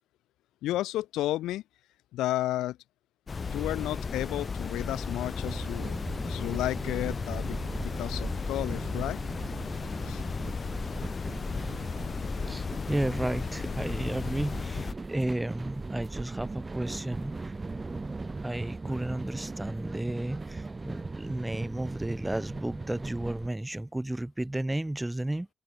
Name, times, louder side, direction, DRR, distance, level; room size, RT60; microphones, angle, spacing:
voice 1, 0.6-1.6 2.1-2.8 3.5-6.0 6.2-9.2 10.1-10.2, left 15 dB, 75° left, 1.2 m, -32 dB
sound 1, 3.3-14.9, left 5 dB, 40° left, 0.6 m, -35 dB
sound 2, 5.4-23.5, right 3 dB, 25° right, 1.1 m, -39 dB
voice 2, 12.5-17.6 18.4-25.5, right 1 dB, 10° right, 1.3 m, -33 dB
hypercardioid pair, 50°, 0 cm